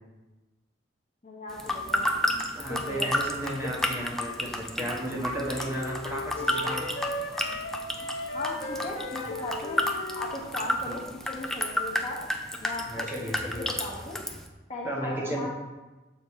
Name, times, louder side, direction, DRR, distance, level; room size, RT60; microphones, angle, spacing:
voice 1, 1.2-2.1 2.7-3.1 3.6-3.7 8.3-12.2 12.6-14.2 14.7-15.5, left 2 dB, 40° left, -1 dB, 1.1 m, -37 dB
sound 1, 1.5-14.5, left 1 dB, ahead, 0.5 m, -32 dB
voice 2, 2.5-6.9 10.8-10.9 12.9-13.7 14.8-15.5, right 1 dB, 15° right, -3 dB, 1.2 m, -34 dB
sound 2, 5.4-10.5, left 1 dB, 60° left, 0.7 m, -37 dB
6.8 x 4.5 x 4.7 m, 1.1 s
head